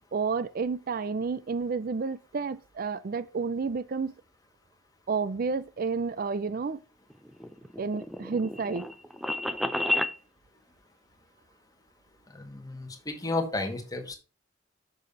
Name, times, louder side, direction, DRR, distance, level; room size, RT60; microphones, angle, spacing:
voice 1, 0.1-4.1 5.1-6.8 7.8-8.9, right 4 dB, 50° right, 0.4 m, -30 dB
sound 1, 7.1-10.2, left 1 dB, ahead, 0.6 m, -31 dB
voice 2, 12.3-14.2, left 2 dB, 20° left, 1.8 m, -32 dB
7.0 x 6.6 x 5.4 m
head